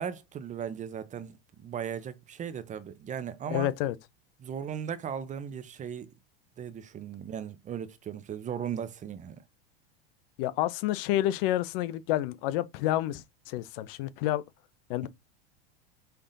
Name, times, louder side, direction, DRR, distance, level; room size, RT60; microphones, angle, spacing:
voice 1, 0.0-3.7 4.4-6.1 6.6-9.4, right 8 dB, 25° right, 0.6 m, -37 dB
voice 2, 3.5-3.9 10.4-14.4 14.9-15.1, left 14 dB, 60° left, 0.6 m, -29 dB
5.5 x 3.4 x 2.6 m
hypercardioid pair, 110°, 32 cm